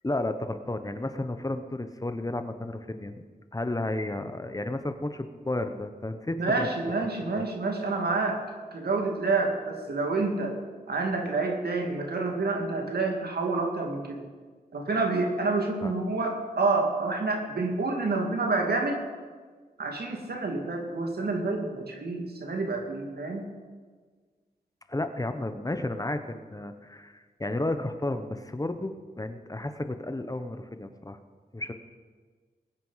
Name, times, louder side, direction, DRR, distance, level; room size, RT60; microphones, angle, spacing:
voice 1, 0.0-3.1 3.5-6.7 7.2-7.5 15.8-15.9 24.9-31.2 31.5-31.7, left 2 dB, 20° left, 8 dB, 1.0 m, -32 dB
voice 2, 6.3-8.4 8.7-10.6 10.9-14.2 14.7-19.0 19.8-23.5, right 3 dB, 90° right, 2 dB, 2.4 m, -28 dB
20.5 x 9.6 x 5.7 m, 1.5 s
wide cardioid pair, 85°, 16 cm